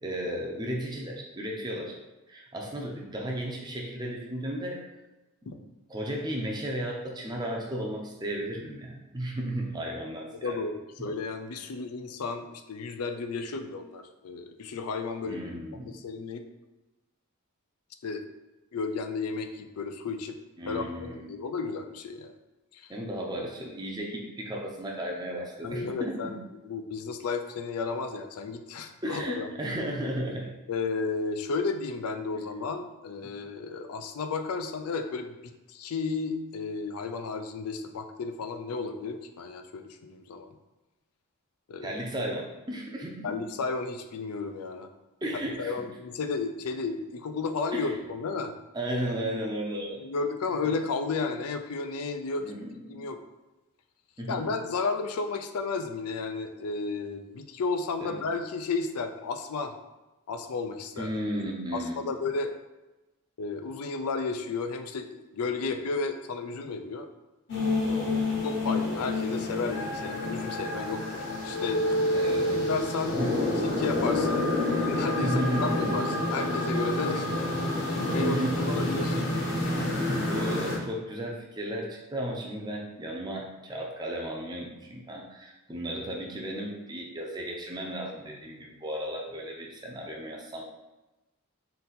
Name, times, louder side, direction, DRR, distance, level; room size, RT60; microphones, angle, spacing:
voice 1, 0.0-2.0 2.3-4.8 5.4-5.6 5.9-10.6 15.2-15.9 20.6-21.2 22.9-26.4 29.0-30.5 41.8-43.3 45.2-45.9 47.7-48.0 48.7-50.0 52.4-53.0 54.2-54.5 58.0-58.2 61.0-61.9 67.8-68.1 72.1-72.7 73.1-73.4 75.2-76.1 78.0-79.1 80.3-90.7, right 1 dB, 20° right, -1 dB, 0.5 m, -34 dB
voice 2, 10.4-15.4 15.8-16.4 18.0-18.2 18.7-20.4 20.7-22.3 22.7-22.9 25.6-26.4 26.6-29.5 30.7-40.5 41.7-42.0 43.2-44.9 45.6-48.5 50.0-52.5 52.9-53.2 54.3-59.7 60.3-61.1 61.7-62.5 63.4-67.1 68.4-71.9 72.5-73.2 73.6-77.3 77.6-77.7 78.1-79.4, left 4 dB, 85° left, 7 dB, 0.4 m, -33 dB
sound 1, 67.5-80.8, left 2 dB, 55° left, 1.0 m, -28 dB
3.9 x 2.7 x 4.0 m, 1.1 s
head